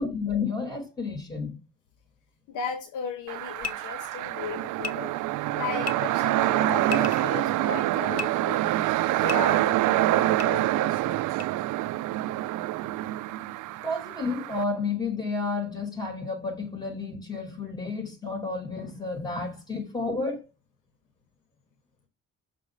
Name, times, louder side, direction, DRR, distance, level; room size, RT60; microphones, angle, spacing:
voice 1, 0.0-1.6 13.8-20.4, left 4 dB, 15° left, 5.0 m, -31 dB
voice 2, 2.5-5.1 5.5-8.9 9.2-11.2, left 6 dB, 80° left, 1.3 m, -36 dB
sound 1, 3.3-14.6, right 16 dB, 80° right, 0.5 m, -26 dB
sound 2, 3.6-3.7 4.8-4.9 5.8-5.9 6.8-7.3 8.1-8.3 9.3-9.4 10.4-10.5 11.4-11.5, left 6 dB, 60° left, 0.9 m, -33 dB
6.4 x 4.1 x 6.1 m
cardioid pair, 90°, 30 cm